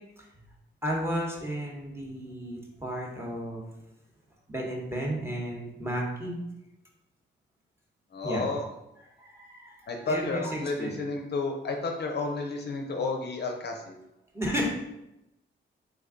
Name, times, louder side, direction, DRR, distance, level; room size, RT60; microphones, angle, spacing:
voice 1, 0.8-3.6 4.5-6.4 8.2-8.4 9.2-11.0 14.3-14.7, equal, 10° right, -2 dB, 0.9 m, -33 dB
voice 2, 8.1-8.6 9.9-13.9, left 3 dB, 55° left, 3 dB, 0.5 m, -31 dB
3.4 x 2.2 x 3.6 m, 0.90 s
cardioid pair, 80°, 21 cm